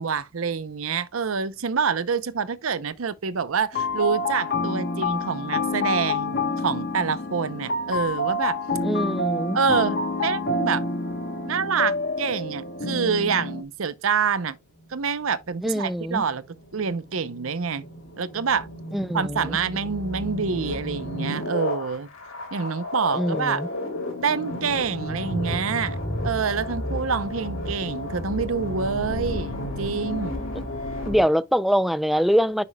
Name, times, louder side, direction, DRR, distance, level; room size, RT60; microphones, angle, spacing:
voice 1, 0.0-8.6 9.5-10.8 11.5-14.6 14.9-16.4 16.7-17.8 18.2-18.7 19.1-22.1 22.5-23.6 24.2-26.0 26.2-30.4, right 5 dB, 80° right, 0.7 m, -26 dB
sound 1, 3.7-13.6, left 2 dB, 50° left, 1.2 m, -27 dB
voice 2, 8.8-9.6 15.6-16.2 18.9-19.6 23.1-23.7 31.1-32.6, equal, ahead, 0.3 m, -23 dB
sound 2, 14.8-31.2, left 1 dB, 70° left, 2.9 m, -32 dB
9.9 x 6.9 x 2.3 m
head